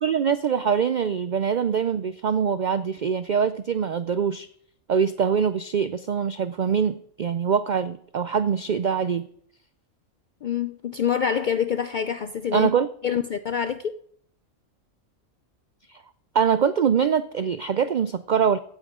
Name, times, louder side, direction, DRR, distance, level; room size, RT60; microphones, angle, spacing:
voice 1, 0.0-4.5 4.9-9.3 12.5-12.9 15.9-16.0 16.3-18.6, right 7 dB, 75° right, 0.4 m, -23 dB
voice 2, 10.4-12.7 13.0-14.0, left 8 dB, 65° left, 0.4 m, -26 dB
16.0 x 9.0 x 3.7 m
omnidirectional pair, 1.4 m